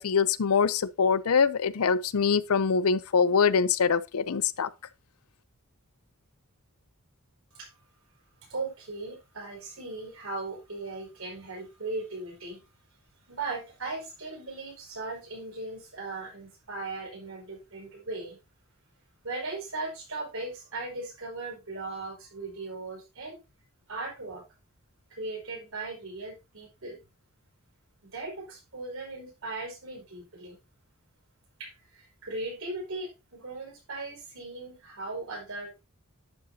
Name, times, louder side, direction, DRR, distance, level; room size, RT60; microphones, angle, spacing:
voice 1, 0.0-4.7, left 6 dB, 80° left, 0.6 m, -24 dB
voice 2, 8.5-12.7 13.3-18.4 19.2-23.4 23.9-24.4 25.1-27.0 28.0-30.6 31.6-35.8, right 3 dB, 65° right, 5.3 m, -38 dB
11.0 x 7.8 x 2.7 m
head